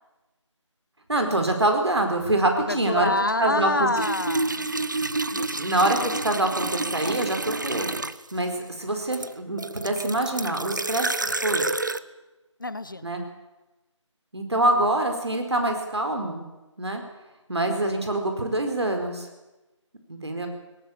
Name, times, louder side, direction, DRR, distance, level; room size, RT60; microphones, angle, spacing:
voice 1, 1.1-3.1 3.4-3.9 5.6-7.9 8.3-11.7 13.0-13.2 14.3-16.4 16.8-17.0 17.5-19.3 20.1-20.5, right 1 dB, 60° right, 4 dB, 4.7 m, -25 dB
voice 2, 2.6-4.5 5.3-5.6 6.0-6.2 12.6-13.1, left 2 dB, 40° left, 14 dB, 1.0 m, -27 dB
sound 1, 4.0-8.4 9.1-12.0, right 2 dB, 40° right, 0.7 m, -29 dB
18.5 x 18.5 x 8.8 m, 1.1 s
figure-of-eight pair, 165°, 16 cm